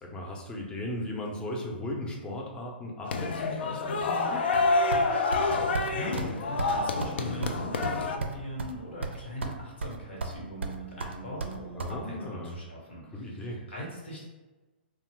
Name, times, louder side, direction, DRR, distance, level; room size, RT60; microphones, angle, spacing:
voice 1, 0.0-4.4 11.7-12.6 13.1-13.6, left 1 dB, 15° left, -1 dB, 0.6 m, -36 dB
sound 1, 3.1-8.2, left 3 dB, 70° left, 0.4 m, -28 dB
sound 2, 4.9-5.5 5.7-5.9 6.2-6.3 6.6-6.7 7.0-7.1 7.4-8.7 9.0-9.6 9.8-10.4 10.6-11.9, right 4 dB, 85° right, 0.4 m, -34 dB
voice 2, 5.6-14.2, equal, 85° left, -3 dB, 1.2 m, -40 dB
2.7 x 2.2 x 3.2 m, 1.2 s
hypercardioid pair, 130°, 6 cm